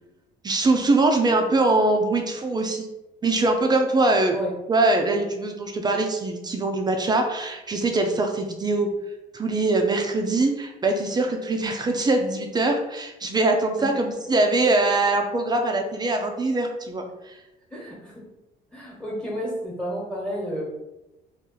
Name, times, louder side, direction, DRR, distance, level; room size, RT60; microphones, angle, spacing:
voice 1, 0.4-2.9 3.2-4.4 4.7-8.9 9.3-17.4, right 2 dB, 25° right, 3 dB, 0.4 m, -22 dB
voice 2, 17.7-18.2 18.7-20.6, equal, 5° left, -4 dB, 1.2 m, -31 dB
2.9 x 2.4 x 3.7 m, 0.98 s
cardioid pair, 110°, 17 cm